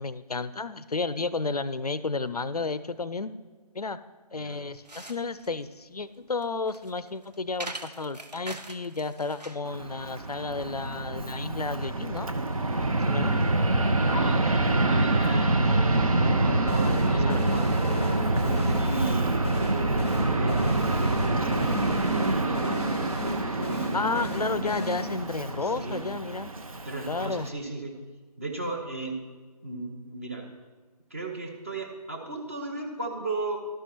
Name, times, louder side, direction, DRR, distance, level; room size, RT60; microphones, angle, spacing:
voice 1, 0.0-3.3 3.7-4.0 4.3-12.3 13.1-13.4 16.8-17.4 23.9-26.5 27.0-27.5, left 3 dB, 75° left, 15 dB, 0.5 m, -32 dB
sound 1, 4.5-9.7, right 2 dB, 90° right, 0.9 m, -43 dB
Fixed-wing aircraft airplane, 9.7-27.5, right 2 dB, 60° right, 0.9 m, -26 dB
voice 2, 14.0-21.5 21.7-22.9 23.4-23.9 25.6-26.0 26.8-27.9 28.4-29.2 29.6-30.5 31.1-33.6, right 2 dB, 20° right, 1 dB, 0.7 m, -36 dB
sound 2, 16.7-25.5, equal, 20° left, 0.7 m, -35 dB
12.0 x 5.6 x 4.3 m, 1.4 s
figure-of-eight pair, 160°, 20 cm